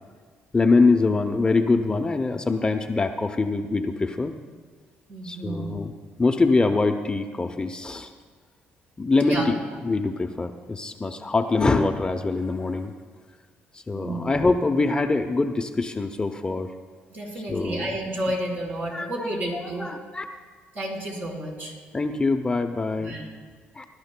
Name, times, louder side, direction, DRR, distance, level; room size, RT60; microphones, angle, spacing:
voice 1, 0.5-4.3 5.2-5.9 6.2-8.1 9.0-12.9 13.7-16.7 17.5-17.9 18.9-20.2 21.9-23.1 23.8-23.9, left 3 dB, 20° left, 5 dB, 0.6 m, -24 dB
voice 2, 5.1-5.7 9.2-9.5 13.9-14.3 17.1-19.9 20.7-21.7 23.0-23.2, right 1 dB, 50° right, -4 dB, 4.3 m, -31 dB
22.0 x 12.0 x 2.2 m, 1.5 s
cardioid pair, 90°, 4 cm